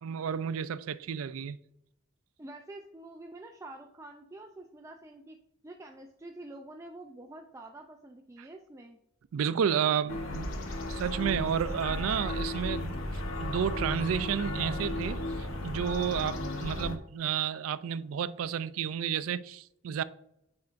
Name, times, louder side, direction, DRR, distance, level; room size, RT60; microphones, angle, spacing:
voice 1, 0.0-1.6 9.3-10.6 10.9-13.0 13.4-20.0, right 8 dB, 85° right, 0.4 m, -31 dB
voice 2, 2.4-5.4 5.6-9.0, right 2 dB, 15° right, 0.4 m, -47 dB
sound 1, 10.1-17.0, left 1 dB, 80° left, 0.8 m, -34 dB
9.4 x 4.4 x 2.5 m
head